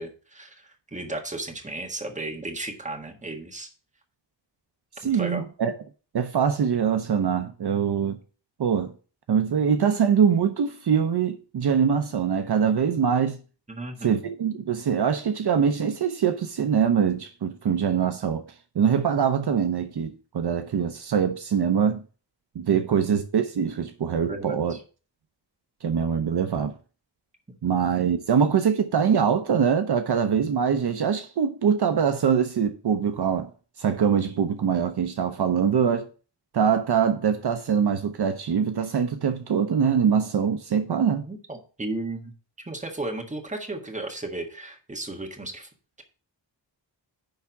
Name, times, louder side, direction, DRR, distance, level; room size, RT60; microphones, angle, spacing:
voice 1, 0.0-3.7 5.1-5.4 13.7-14.2 24.3-24.8 41.2-42.3 42.7-45.7, right 2 dB, 15° right, 1.6 m, -34 dB
voice 2, 5.0-5.7 6.1-8.2 8.6-8.9 9.3-13.4 14.0-18.4 18.8-22.0 22.6-24.8 25.8-26.7 27.6-33.5 33.8-36.1 36.5-41.3, right 7 dB, 60° right, 0.8 m, -23 dB
10.5 x 3.6 x 7.0 m
wide cardioid pair, 170°, 44 cm